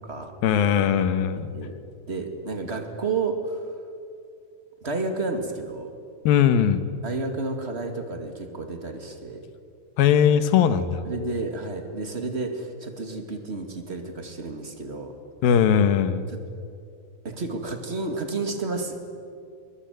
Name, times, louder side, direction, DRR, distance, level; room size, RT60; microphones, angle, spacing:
voice 1, 0.4-1.5 6.2-6.8 10.0-11.0 15.4-16.3, left 8 dB, 90° left, 11 dB, 3.0 m, -20 dB
voice 2, 2.1-3.6 4.8-5.9 7.0-9.4 11.0-15.1 17.2-19.0, right 3 dB, 20° right, 5 dB, 1.9 m, -31 dB
23.0 x 22.5 x 9.3 m, 2.4 s
omnidirectional pair, 4.1 m